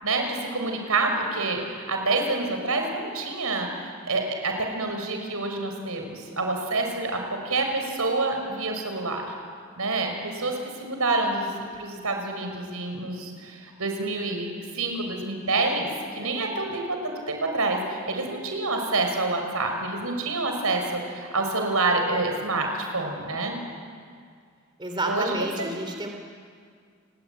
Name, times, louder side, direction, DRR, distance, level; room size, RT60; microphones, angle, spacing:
voice 1, 0.0-9.2 9.8-11.5 11.8-20.8 21.1-23.6 25.1-25.5, right 3 dB, 90° right, 3 dB, 5.8 m, -27 dB
voice 2, 24.8-26.1, right 2 dB, 20° right, 3 dB, 2.9 m, -30 dB
30.0 x 20.5 x 9.5 m, 2.1 s
head